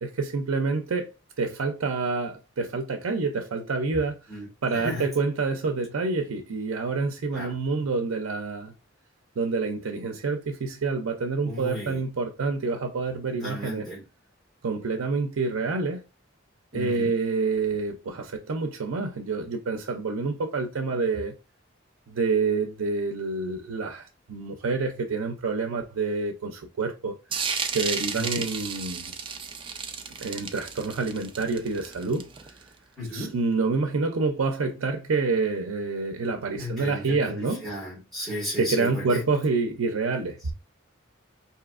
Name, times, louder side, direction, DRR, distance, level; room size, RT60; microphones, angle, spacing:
voice 1, 0.0-8.7 9.4-13.9 14.6-16.0 16.7-21.3 22.1-27.2 27.7-29.1 30.2-32.6 33.1-37.7 38.6-40.5, right 4 dB, 90° right, 0.5 m, -28 dB
voice 2, 4.7-5.1 7.3-7.5 11.4-12.0 13.4-14.0 16.7-17.1 28.1-28.4 33.0-33.3 36.5-37.3 37.6-39.2, left 1 dB, ahead, 1.7 m, -34 dB
sound 1, 27.3-32.6, right 6 dB, 25° right, 0.4 m, -32 dB
4.8 x 2.7 x 2.4 m
head